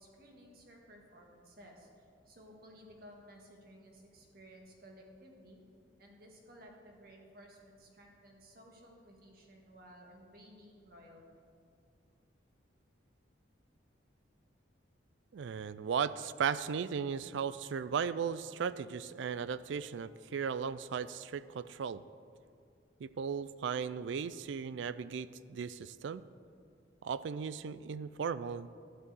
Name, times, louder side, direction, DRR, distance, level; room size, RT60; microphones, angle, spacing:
voice 1, 0.0-5.6 6.0-11.2, equal, 50° right, 0 dB, 1.7 m, -56 dB
voice 2, 15.3-22.0 23.0-26.2 27.0-28.7, right 6 dB, 70° right, 15 dB, 0.3 m, -36 dB
12.5 x 4.6 x 8.5 m, 2.3 s
head